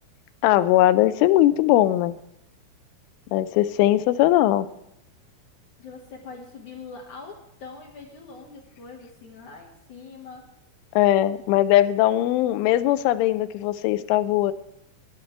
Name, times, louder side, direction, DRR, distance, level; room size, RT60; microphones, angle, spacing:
voice 1, 0.4-2.2 3.3-4.7 11.0-14.5, left 14 dB, 80° left, 13 dB, 2.9 m, -20 dB
voice 2, 5.8-10.5, left 4 dB, 65° left, 0 dB, 1.9 m, -43 dB
20.0 x 10.5 x 3.3 m, 0.80 s
omnidirectional pair, 5.8 m